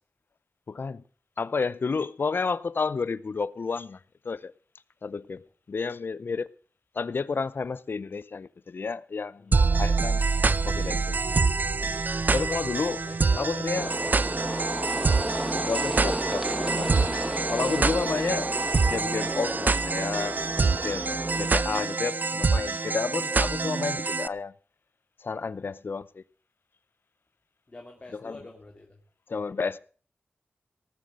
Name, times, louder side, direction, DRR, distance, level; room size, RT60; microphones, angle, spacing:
voice 1, 0.7-1.0 1.4-4.0 4.2-4.5 5.0-6.5 7.0-10.3 10.6-11.2 12.3-13.0 13.4-13.9 15.7-16.9 17.5-18.5 18.9-20.4 20.8-24.5 25.2-26.2 28.2-28.4 29.3-29.8, left 4 dB, 60° left, 0.6 m, -31 dB
voice 2, 9.4-10.0 11.0-11.1 13.1-14.4 27.7-29.0, left 2 dB, 35° left, 2.2 m, -47 dB
sound 1, 9.5-24.3, right 4 dB, 50° right, 0.5 m, -26 dB
sound 2, 13.7-21.5, right 1 dB, 5° right, 1.6 m, -33 dB
18.5 x 7.5 x 6.5 m
wide cardioid pair, 80°, 4 cm